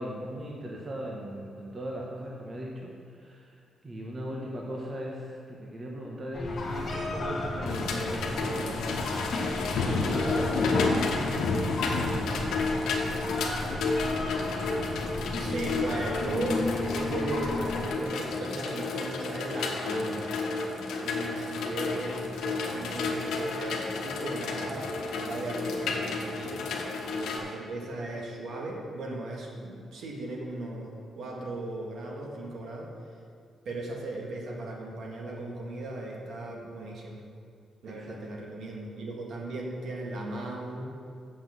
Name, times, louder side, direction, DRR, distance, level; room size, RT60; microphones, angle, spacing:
voice 1, 0.0-3.6 3.8-8.9 9.7-10.8 11.5-12.6 37.8-38.2, equal, 30° right, -2 dB, 1.1 m, -38 dB
sound 1, 6.3-17.9, left 2 dB, 40° left, 1.6 m, -34 dB
sound 2, 7.6-27.4, left 3 dB, 90° left, 1.1 m, -31 dB
voice 2, 15.3-20.3 21.0-24.9 25.2-26.6 27.1-32.9 33.7-37.2 37.8-40.9, right 2 dB, 65° right, -1 dB, 1.7 m, -37 dB
7.4 x 6.1 x 7.5 m, 2.3 s
cardioid pair, 145°, 0 cm